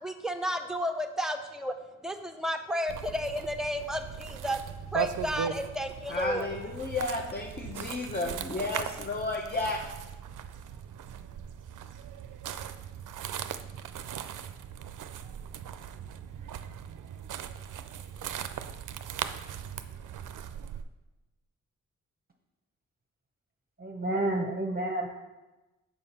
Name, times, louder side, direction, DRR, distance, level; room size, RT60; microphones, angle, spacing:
voice 1, 0.0-1.7 2.0-4.6 4.9-6.5, equal, ahead, 6 dB, 0.7 m, -32 dB
sound 1, 2.9-20.8, right 9 dB, 75° right, 0.5 m, -39 dB
voice 2, 6.1-9.8, left 3 dB, 30° left, 0 dB, 0.8 m, -32 dB
voice 3, 23.8-25.1, right 1 dB, 30° right, 1 dB, 0.9 m, -30 dB
5.6 x 4.9 x 5.4 m, 1.1 s
cardioid pair, 55°, 31 cm